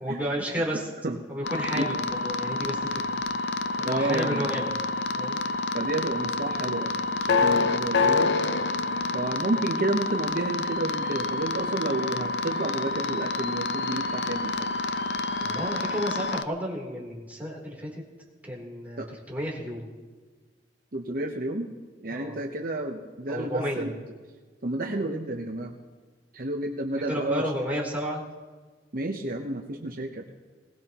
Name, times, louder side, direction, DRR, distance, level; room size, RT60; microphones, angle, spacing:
voice 1, 0.0-0.9 1.3-3.2 3.8-4.8 5.2-5.4 15.4-18.0 18.4-19.9 22.1-22.4 23.3-23.9 26.9-28.2, equal, 10° right, -4 dB, 3.5 m, -32 dB
sound 1, 1.4-16.4, left 3 dB, 70° left, 0.6 m, -28 dB
voice 2, 3.8-4.5 5.7-8.4 9.1-14.7 19.0-19.1 20.9-21.7 22.0-24.0 24.6-25.8 26.3-27.5 28.9-30.3, right 2 dB, 55° right, 3 dB, 1.0 m, -31 dB
21.0 x 18.0 x 3.0 m, 1.4 s
head